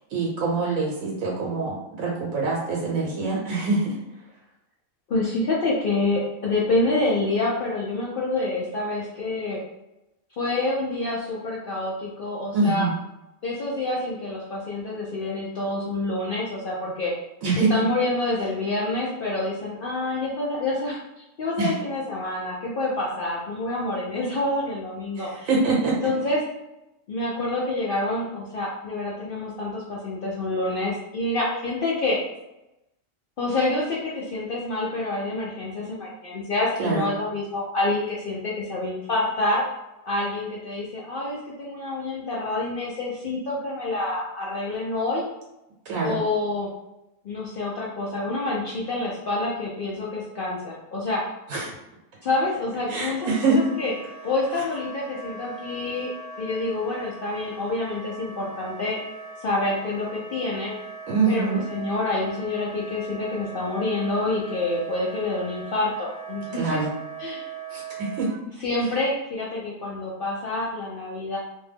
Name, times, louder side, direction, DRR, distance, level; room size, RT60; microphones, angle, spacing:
voice 1, 0.1-3.9 12.5-12.9 17.4-17.7 21.6-21.7 25.2-26.1 36.8-37.1 45.8-46.2 51.5-51.7 52.9-53.6 54.5-54.6 61.1-61.6 66.5-66.9 67.7-68.3, right 3 dB, 85° right, -3 dB, 1.0 m, -24 dB
voice 2, 5.1-9.6 10.4-12.9 13.4-17.1 17.6-25.5 25.8-26.4 27.1-32.2 33.4-39.6 40.1-45.2 46.0-46.7 47.2-51.2 52.2-53.3 53.5-53.9 54.2-56.1 56.4-59.0 59.4-60.7 61.3-66.8 67.2-67.4 68.6-71.4, left 2 dB, 65° left, -5 dB, 0.5 m, -27 dB
Wind instrument woodwind instrument, 53.1-68.4, right 4 dB, 15° right, 1.0 m, -40 dB
2.5 x 2.1 x 3.3 m, 0.93 s
omnidirectional pair, 1.4 m